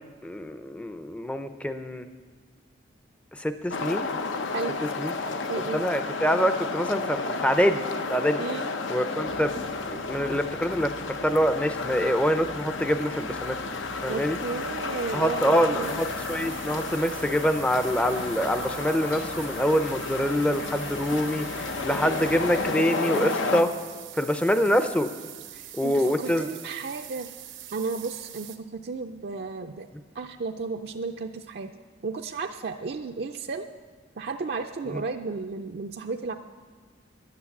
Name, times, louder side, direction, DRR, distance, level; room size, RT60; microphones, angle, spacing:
voice 1, 0.2-2.1 3.3-4.1 5.0-5.1 5.7-8.4 8.9-13.6 14.0-14.4 15.1-21.5 21.8-23.7 24.2-25.1 25.7-26.5, equal, 5° left, 9 dB, 0.5 m, -25 dB
sound 1, 3.7-23.6, left 3 dB, 85° left, 0.7 m, -32 dB
voice 2, 5.5-5.8 8.4-8.8 14.1-16.0 25.5-27.3 27.7-29.9 30.1-31.7 32.0-33.7 34.2-36.3, right 4 dB, 55° right, 4 dB, 0.4 m, -33 dB
sound 2, 9.2-22.7, left 1 dB, 65° left, 1.0 m, -47 dB
sound 3, 15.8-28.6, right 12 dB, 85° right, 0.9 m, -44 dB
11.5 x 9.5 x 7.1 m, 1.5 s
head